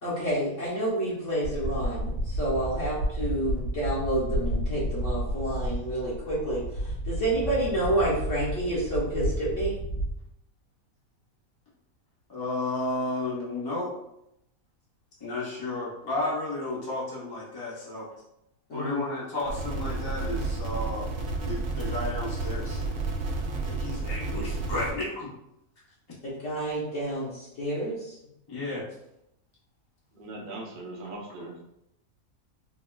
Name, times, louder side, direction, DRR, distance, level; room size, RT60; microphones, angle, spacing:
voice 1, 0.0-9.7 18.7-19.0 26.2-28.1, right 1 dB, 55° left, -9 dB, 1.3 m, -29 dB
sound 1, 1.4-10.1, right 1 dB, 80° left, 1.9 m, -31 dB
voice 2, 12.3-13.9 15.2-18.1 18.7-21.1 21.4-22.8 23.7-25.3 28.5-28.9, left 2 dB, 30° left, -6 dB, 0.4 m, -32 dB
sound 2, 19.5-24.9, right 3 dB, 75° right, 1.0 m, -31 dB
voice 3, 30.1-31.6, right 2 dB, 45° right, -2 dB, 0.7 m, -40 dB
4.0 x 2.3 x 2.2 m, 0.81 s
omnidirectional pair, 1.6 m